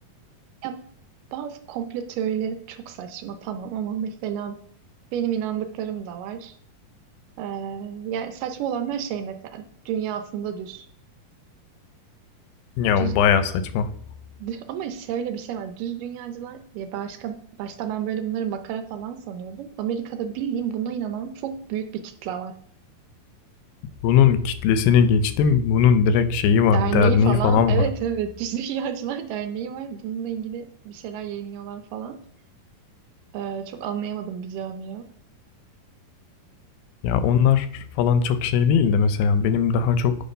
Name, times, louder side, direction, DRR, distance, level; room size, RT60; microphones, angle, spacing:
voice 1, 1.3-4.6 5.1-6.5 7.4-10.9 13.0-13.2 14.4-22.5 26.7-32.2 33.3-35.1, right 8 dB, 80° right, 8 dB, 2.1 m, -30 dB
voice 2, 12.8-13.9 24.0-27.8 37.0-40.2, left 7 dB, 85° left, 11 dB, 2.5 m, -19 dB
9.6 x 3.8 x 5.4 m, 0.62 s
omnidirectional pair, 4.1 m